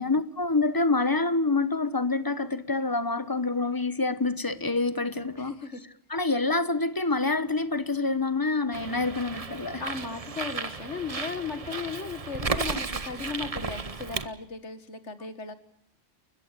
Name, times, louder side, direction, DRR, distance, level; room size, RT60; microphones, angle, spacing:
voice 1, 0.0-5.5 6.1-9.8, left 3 dB, 20° left, 14 dB, 1.1 m, -27 dB
voice 2, 5.4-5.8 9.8-15.5, left 5 dB, 75° left, 12 dB, 2.0 m, -36 dB
Bird, 8.7-14.3, right 4 dB, 30° right, 1.1 m, -34 dB
29.5 x 14.5 x 8.3 m, 0.74 s
omnidirectional pair, 1.2 m